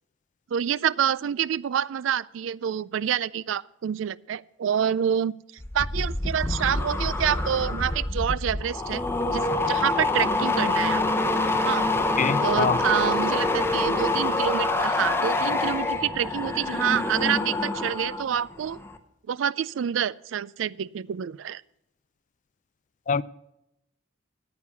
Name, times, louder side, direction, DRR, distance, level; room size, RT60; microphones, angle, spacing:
voice 1, 0.5-5.3 5.7-11.0 11.6-11.9 12.4-18.8 19.3-21.6, right 9 dB, 80° right, 0.4 m, -27 dB
sound 1, 5.6-18.3 18.6-19.0, left 2 dB, 15° left, 0.8 m, -26 dB
voice 2, 12.2-12.8 23.1-23.2, left 6 dB, 40° left, 0.4 m, -24 dB
9.5 x 8.7 x 6.8 m
head